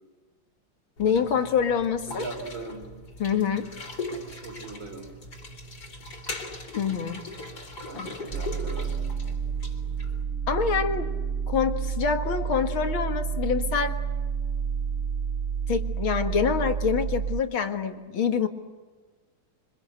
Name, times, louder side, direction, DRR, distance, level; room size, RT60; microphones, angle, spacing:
voice 1, 1.0-2.2 3.2-3.7 6.8-7.2 7.9-8.1 10.5-11.1 11.5-14.0 15.7-18.5, left 6 dB, 80° left, 6 dB, 2.5 m, -26 dB
sound 1, 1.0-10.2, left 2 dB, 50° left, 3.5 m, -40 dB
voice 2, 2.1-2.9 4.4-5.1 7.8-9.1, right 3 dB, 70° right, 5 dB, 5.4 m, -39 dB
sound 2, 8.3-17.4, right 7 dB, 50° right, 1.4 m, -30 dB
27.0 x 25.0 x 8.0 m, 1.3 s
omnidirectional pair, 2.2 m